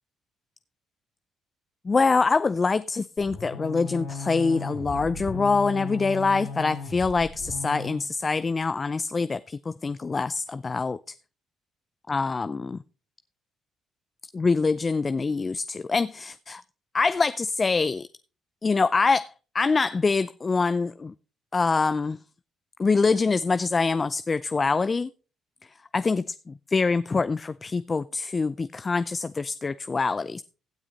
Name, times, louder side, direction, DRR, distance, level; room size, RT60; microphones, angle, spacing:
voice 1, 1.9-11.1 12.1-12.8 14.3-16.6 16.9-18.1 18.6-21.1 21.5-22.2 22.8-25.1 25.9-30.4, left 4 dB, 35° left, 0.4 m, -25 dB
sound 1, 3.2-8.0, left 3 dB, 90° left, 5.3 m, -36 dB
16.0 x 6.2 x 4.0 m
supercardioid pair, 65°, 0 cm